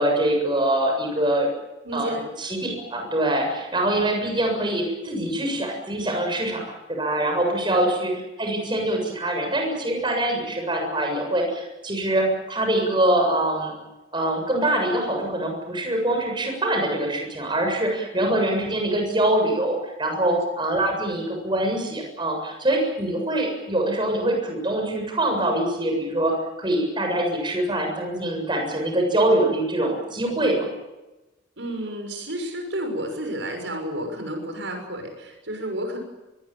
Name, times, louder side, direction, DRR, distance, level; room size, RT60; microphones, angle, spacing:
voice 1, 0.0-1.5 1.9-6.6 6.9-8.1 8.4-13.7 14.1-30.7, right 1 dB, 25° right, 2 dB, 7.4 m, -24 dB
voice 2, 1.8-2.3 7.7-7.8 18.2-18.3 20.2-20.4 31.6-36.0, right 1 dB, 75° right, 4 dB, 6.4 m, -31 dB
23.5 x 20.5 x 9.0 m, 1.1 s
head